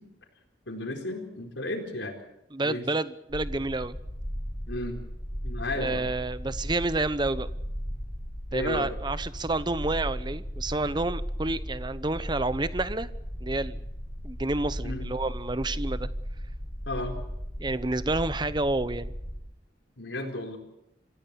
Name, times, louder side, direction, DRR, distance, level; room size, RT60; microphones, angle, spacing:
voice 1, 0.7-2.2 2.6-2.9 4.7-5.0 5.4-6.1 8.5-8.9 14.8-15.1 16.9-17.2 20.0-20.6, left 1 dB, 80° left, 4 dB, 4.4 m, -33 dB
voice 2, 2.5-4.0 5.7-7.5 8.5-13.1 13.4-13.8 14.2-16.1 17.6-19.1, right 2 dB, 25° right, 15 dB, 0.8 m, -29 dB
sound 1, 3.3-19.4, equal, 20° left, 6.6 m, -36 dB
26.5 x 16.0 x 6.9 m, 0.85 s
head